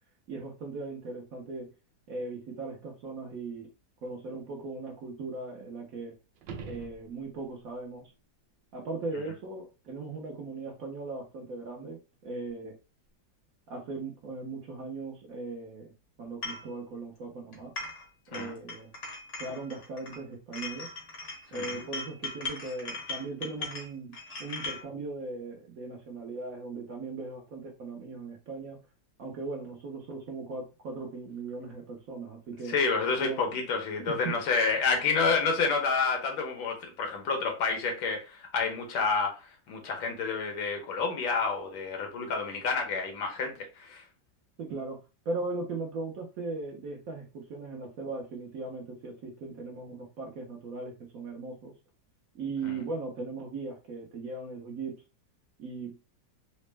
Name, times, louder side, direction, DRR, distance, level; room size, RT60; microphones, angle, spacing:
voice 1, 0.3-1.7 2.1-3.7 4.0-6.1 6.6-8.0 8.7-12.8 13.7-17.7 18.3-18.9 19.4-20.9 21.5-24.1 24.4-28.8 29.2-32.7 33.2-33.6 34.0-34.3 44.6-45.0 45.2-51.7 52.3-55.0 55.6-56.0, right 3 dB, 60° right, 0.9 m, -38 dB
sound 1, 6.4-7.6 12.5-12.6, right 5 dB, 80° right, 1.3 m, -43 dB
sound 2, 16.4-16.7 17.5-18.1 18.3-20.2 20.5-24.8, left 3 dB, 50° left, 0.8 m, -39 dB
voice 2, 21.5-21.8 32.7-44.0 52.6-52.8, left 4 dB, 85° left, 1.7 m, -29 dB
4.1 x 2.0 x 3.2 m
omnidirectional pair, 2.1 m